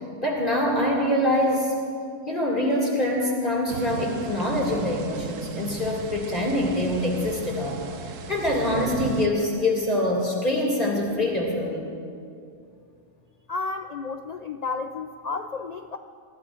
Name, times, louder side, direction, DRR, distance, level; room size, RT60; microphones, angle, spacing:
voice 1, 0.2-1.7 2.3-11.9, left 1 dB, 40° left, -3 dB, 2.5 m, -25 dB
sound 1, 3.7-9.3, right 6 dB, 90° right, 1.2 m, -36 dB
voice 2, 13.5-16.0, left 4 dB, 85° left, 6 dB, 0.3 m, -32 dB
25.5 x 22.0 x 2.5 m, 2.4 s
omnidirectional pair, 1.3 m